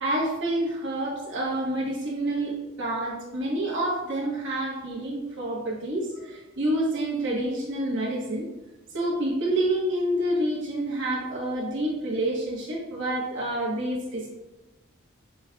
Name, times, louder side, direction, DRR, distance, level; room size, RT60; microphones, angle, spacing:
voice 1, 0.0-8.5 8.9-14.3, right 1 dB, 55° right, -4 dB, 1.1 m, -28 dB
5.8 x 2.2 x 2.5 m, 1.1 s
head